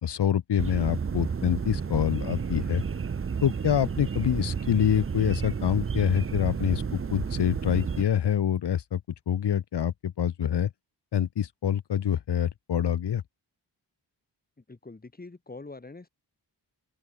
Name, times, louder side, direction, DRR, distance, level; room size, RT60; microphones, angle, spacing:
voice 1, 0.0-2.8 3.4-6.8 7.1-9.0 9.3-10.7 11.1-13.2, left 9 dB, 70° left, 1.2 m, -26 dB
sound 1, 0.6-8.0, right 6 dB, 30° right, 0.7 m, -31 dB
voice 2, 14.6-16.1, left 3 dB, 20° left, 3.0 m, -44 dB
open air
wide cardioid pair, 155°, 42 cm